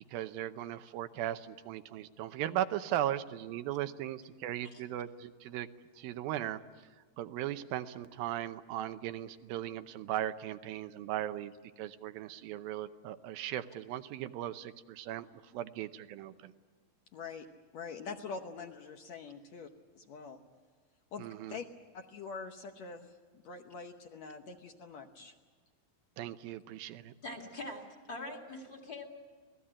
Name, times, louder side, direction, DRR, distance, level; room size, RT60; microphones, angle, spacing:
voice 1, 0.1-5.7 6.0-6.6 7.2-11.5 11.8-15.3 15.5-16.5 21.2-21.6 26.2-27.1, right 12 dB, 85° right, 10 dB, 2.7 m, -37 dB
voice 2, 17.1-17.5 17.7-20.4 21.1-21.7 21.9-23.2 23.4-25.3, left 5 dB, 65° left, 5 dB, 1.9 m, -44 dB
voice 3, 27.2-29.1, left 2 dB, 30° left, 2 dB, 2.4 m, -43 dB
27.0 x 18.5 x 8.8 m, 1.5 s
omnidirectional pair, 4.1 m